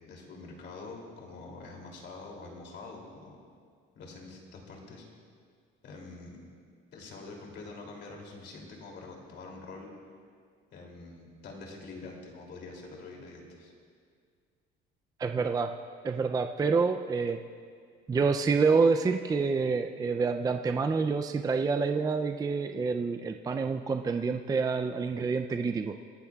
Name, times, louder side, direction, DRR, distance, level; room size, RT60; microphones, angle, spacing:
voice 1, 0.1-3.4 3.9-5.1 5.8-6.4 6.9-9.9 10.7-13.7, left 3 dB, 55° left, 0 dB, 2.8 m, -45 dB
voice 2, 15.2-15.7 16.0-17.4 18.1-25.9, right 4 dB, 20° right, 6 dB, 0.4 m, -27 dB
25.5 x 12.0 x 2.3 m, 2.1 s
cardioid pair, 120°, 21 cm